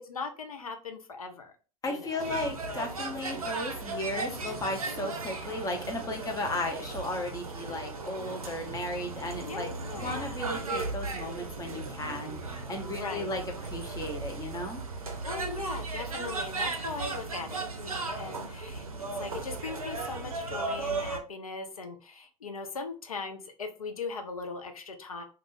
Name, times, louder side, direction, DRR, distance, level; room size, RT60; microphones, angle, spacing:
voice 1, 0.1-1.5 1.9-2.1 9.3-10.4 13.0-13.3 15.2-18.8 19.2-25.2, left 4 dB, 80° left, 6 dB, 0.4 m, -39 dB
voice 2, 1.8-14.8, left 1 dB, 20° left, 3 dB, 0.7 m, -35 dB
sound 1, 2.2-21.2, right 3 dB, 85° right, 0.5 m, -36 dB
2.4 x 2.4 x 3.1 m, 0.36 s
figure-of-eight pair, 75°, 18 cm